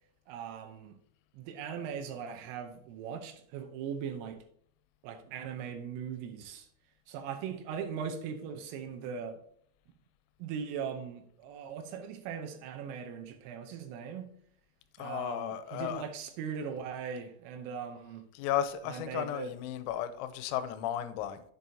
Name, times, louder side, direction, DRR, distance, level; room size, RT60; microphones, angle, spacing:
voice 1, 0.3-1.0 1.3-4.4 5.0-6.7 7.1-9.4 10.4-14.3 15.0-18.3 18.9-19.5, right 7 dB, 80° right, 3.3 m, -39 dB
voice 2, 15.0-16.1 18.3-21.4, left 11 dB, 90° left, 3.4 m, -34 dB
10.5 x 7.6 x 2.8 m
omnidirectional pair, 5.9 m